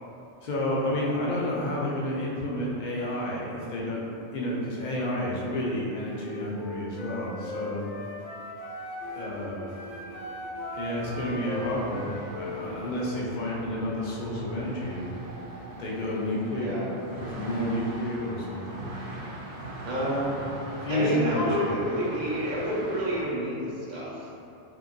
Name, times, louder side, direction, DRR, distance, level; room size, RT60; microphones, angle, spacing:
voice 1, 0.4-4.1 4.3-7.9 9.2-9.8 10.7-15.1 15.5-16.9 17.2-18.9 19.9-20.2 20.8-21.8, left 1 dB, 60° left, -5 dB, 0.5 m, -30 dB
Wind instrument woodwind instrument, 6.1-9.3 9.7-13.1, left 2 dB, 85° left, 1.0 m, -38 dB
sound 1, 9.0-23.2, right 1 dB, 80° right, 0.9 m, -41 dB
voice 2, 16.5-17.0 19.9-20.4 20.9-24.3, equal, 50° right, -6 dB, 0.6 m, -29 dB
2.7 x 2.5 x 2.5 m, 2.7 s
omnidirectional pair, 1.2 m